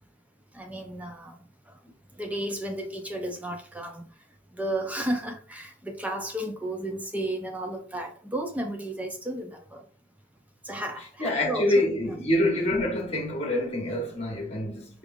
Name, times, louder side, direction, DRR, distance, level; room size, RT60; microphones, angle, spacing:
voice 1, 0.5-1.4 1.7-1.8 2.2-4.1 4.5-9.8 10.6-11.7 12.0-12.2, right 1 dB, 10° right, 0.6 m, -33 dB
voice 2, 11.2-15.0, left 1 dB, 35° left, 1.4 m, -26 dB
4.9 x 3.3 x 2.6 m
head